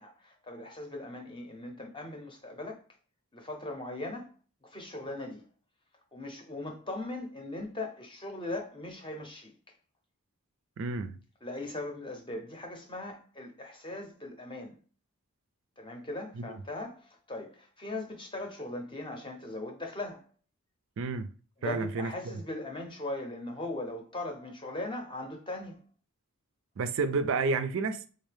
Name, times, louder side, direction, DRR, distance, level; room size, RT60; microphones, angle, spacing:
voice 1, 0.0-2.8 3.3-4.3 4.6-5.4 6.1-9.5 11.4-14.8 15.8-20.3 21.6-25.8, left 2 dB, 20° left, 0.7 m, -39 dB
voice 2, 10.8-11.1 21.0-21.3 21.6-22.1 26.8-28.0, right 4 dB, 60° right, 0.4 m, -30 dB
3.8 x 2.7 x 3.3 m
head